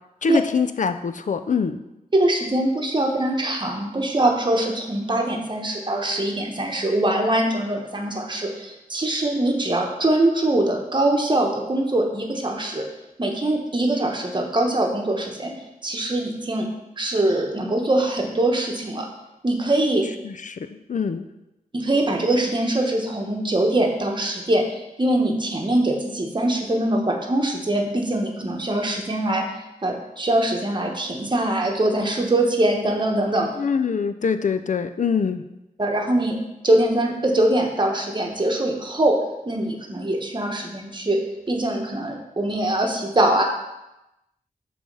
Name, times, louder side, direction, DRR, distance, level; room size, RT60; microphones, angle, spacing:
voice 1, 0.2-1.8 20.2-21.3 33.6-35.4, left 6 dB, 60° left, 10 dB, 0.4 m, -24 dB
voice 2, 2.1-12.9 13.2-15.5 15.8-16.7 17.0-19.1 19.4-20.1 21.7-24.7 25.0-29.4 29.8-33.5 35.8-36.4 36.6-43.4, right 1 dB, 30° right, 1 dB, 1.0 m, -22 dB
6.9 x 3.4 x 5.4 m, 0.94 s
wide cardioid pair, 90°, 15 cm